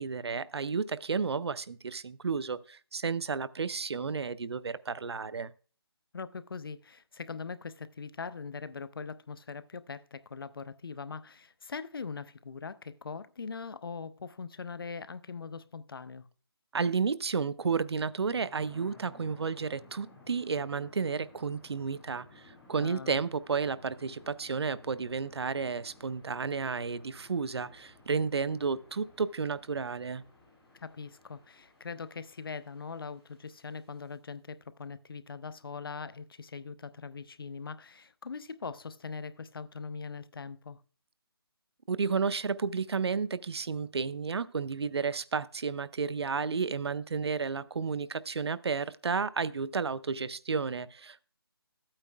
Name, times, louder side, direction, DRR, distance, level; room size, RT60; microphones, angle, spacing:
voice 1, 0.0-5.5 16.7-30.2 41.9-51.2, right 5 dB, 85° right, 0.6 m, -32 dB
voice 2, 6.1-16.3 22.8-23.2 30.8-40.8, left 5 dB, 60° left, 0.6 m, -41 dB
sound 1, 18.2-34.1, left 2 dB, 5° left, 2.0 m, -58 dB
13.0 x 8.8 x 2.3 m
hypercardioid pair, 175°, 13 cm